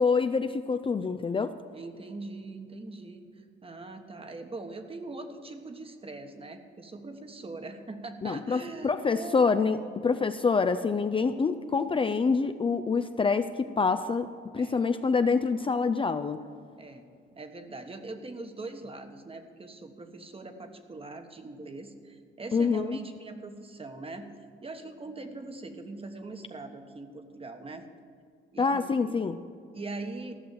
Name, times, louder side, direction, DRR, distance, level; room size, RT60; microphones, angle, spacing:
voice 1, 0.0-1.5 8.2-16.4 22.5-23.0 28.6-29.4, left 4 dB, 25° left, 9 dB, 0.5 m, -26 dB
voice 2, 1.7-9.4 14.5-14.8 16.8-17.1 17.3-24.3 24.6-27.9 28.5-29.2 29.7-30.4, right 3 dB, 30° right, 7 dB, 1.3 m, -42 dB
14.5 x 6.2 x 9.3 m, 2.2 s
cardioid pair, 90°, 20 cm